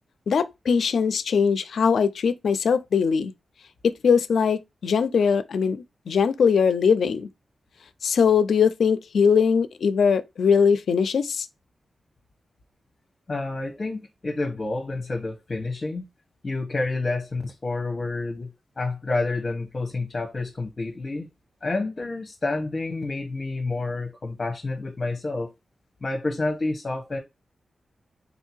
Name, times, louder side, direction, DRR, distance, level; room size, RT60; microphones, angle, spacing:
voice 1, 0.3-3.3 3.8-7.3 8.0-11.5, left 6 dB, 80° left, 0.4 m, -21 dB
voice 2, 13.3-16.0 16.4-18.5 18.8-21.3 21.6-25.5 26.0-27.2, left 2 dB, 40° left, 1.0 m, -29 dB
4.1 x 2.7 x 4.4 m
cardioid pair, 85°, 0 cm